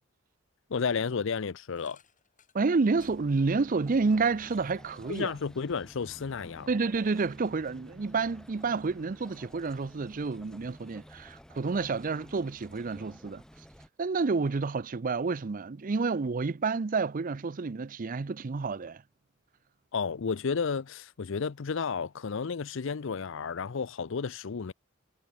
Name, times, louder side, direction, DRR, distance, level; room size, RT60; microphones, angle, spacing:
voice 1, 0.7-2.0 5.1-6.7 19.9-24.7, left 5 dB, 65° left, 0.5 m, -32 dB
sound 1, 1.7-5.7 6.1-7.3, left 7 dB, 40° left, 6.1 m, -66 dB
voice 2, 2.5-5.3 6.7-13.4 14.0-19.0, right 4 dB, 40° right, 0.5 m, -29 dB
sound 2, 2.9-13.9, equal, 5° left, 1.9 m, -52 dB
head